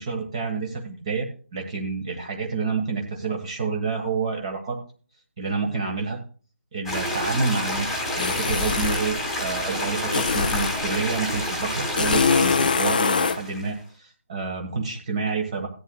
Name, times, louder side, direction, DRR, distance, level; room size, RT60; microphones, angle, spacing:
voice 1, 0.0-4.8 5.4-6.2 6.7-15.7, right 4 dB, 25° right, 2 dB, 1.5 m, -28 dB
sound 1, 6.9-13.7, left 1 dB, ahead, 1.6 m, -29 dB
sound 2, 8.2-9.1 10.1-10.8 12.0-13.4, left 5 dB, 35° left, 0.6 m, -23 dB
17.5 x 11.0 x 2.3 m, 0.40 s
hypercardioid pair, 175°, 8 cm